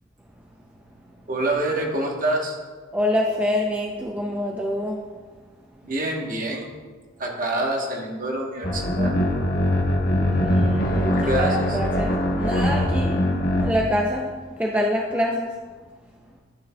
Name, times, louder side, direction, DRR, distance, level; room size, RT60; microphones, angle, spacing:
voice 1, 1.3-2.6 5.8-6.7 7.2-9.2 11.1-11.8, right 1 dB, 40° right, 0 dB, 1.1 m, -26 dB
voice 2, 2.9-5.0 10.3-13.1 13.5-14.3 14.6-15.5, left 1 dB, 10° right, -1 dB, 0.4 m, -25 dB
sound 1, 8.6-13.7, left 1 dB, 45° left, 1.0 m, -22 dB
11.5 x 6.5 x 2.2 m, 1.4 s
head